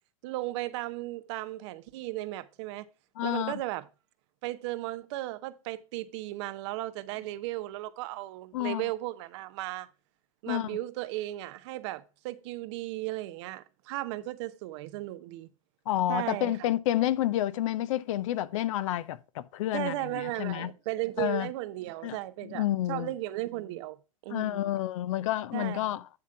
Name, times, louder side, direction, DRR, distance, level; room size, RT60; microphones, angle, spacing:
voice 1, 0.2-2.8 3.2-3.9 4.4-9.9 10.4-15.5 16.1-16.6 19.7-24.0 24.2-24.7 25.5-25.9, right 17 dB, 55° right, 0.7 m, -35 dB
voice 2, 3.2-3.5 8.5-8.9 10.5-10.7 15.9-20.7 21.2-21.5 22.0-22.2 22.4-23.1 24.3-26.0, left 13 dB, 60° left, 0.7 m, -29 dB
9.8 x 3.6 x 5.6 m
hypercardioid pair, 110°, 18 cm